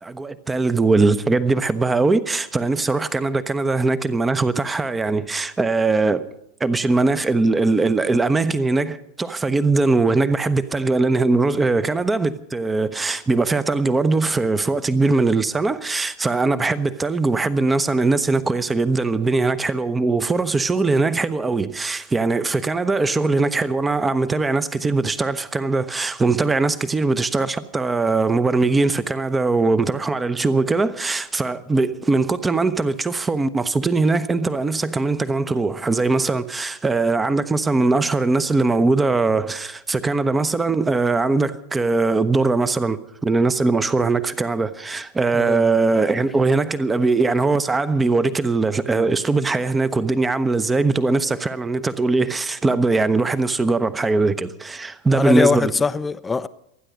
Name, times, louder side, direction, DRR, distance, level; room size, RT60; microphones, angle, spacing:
voice 1, 0.0-6.2 6.6-55.7, right 3 dB, 10° right, 0.9 m, -21 dB
voice 2, 45.3-45.6 55.1-56.5, left 4 dB, 15° left, 0.6 m, -21 dB
27.0 x 10.0 x 5.2 m
figure-of-eight pair, 90°, 0 cm